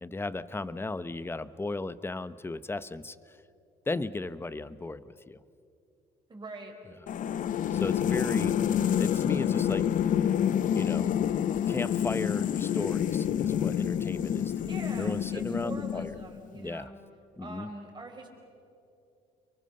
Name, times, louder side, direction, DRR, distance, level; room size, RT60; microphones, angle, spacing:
voice 1, 0.0-3.4 3.9-5.4 7.7-8.6 8.9-9.9 10.7-11.1 11.7-16.2 16.5-16.9 17.4-17.7, left 2 dB, 15° left, 15 dB, 0.8 m, -35 dB
voice 2, 6.3-6.7 14.7-17.0 17.4-18.3, right 2 dB, 25° right, 2 dB, 5.4 m, -43 dB
sound 1, 7.1-16.4, left 9 dB, 50° left, 0.6 m, -28 dB
30.0 x 23.0 x 6.7 m, 2.6 s
cardioid pair, 110°, 17 cm